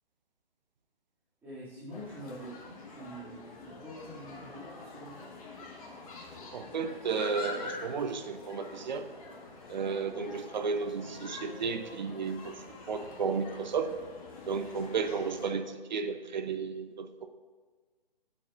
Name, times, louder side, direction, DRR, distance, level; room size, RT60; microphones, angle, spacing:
voice 1, 1.4-5.3, equal, 5° right, -12 dB, 2.5 m, -45 dB
sound 1, 1.9-15.5, left 3 dB, 35° left, 1.7 m, -46 dB
voice 2, 6.5-9.1 9.7-12.5 12.9-13.9 14.5-17.1, right 5 dB, 50° right, 9 dB, 0.7 m, -33 dB
14.0 x 7.5 x 2.6 m, 1.4 s
figure-of-eight pair, 145°, 29 cm